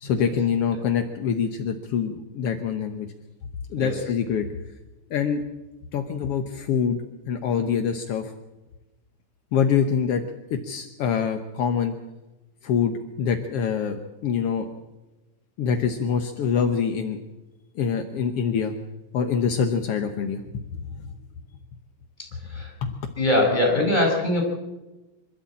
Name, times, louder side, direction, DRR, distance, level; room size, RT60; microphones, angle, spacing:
voice 1, 0.0-3.1 3.7-4.5 5.1-5.4 5.9-7.0 7.3-8.3 9.5-10.2 10.5-11.9 12.6-14.7 15.6-17.2 17.7-18.7 19.1-20.4 21.0-21.1 22.8-22.9, left 7 dB, 65° left, 5 dB, 1.5 m, -25 dB
voice 2, 22.2-22.7 23.2-24.4, left 1 dB, 10° left, 1 dB, 5.1 m, -22 dB
25.0 x 13.0 x 8.6 m, 1.1 s
omnidirectional pair, 4.0 m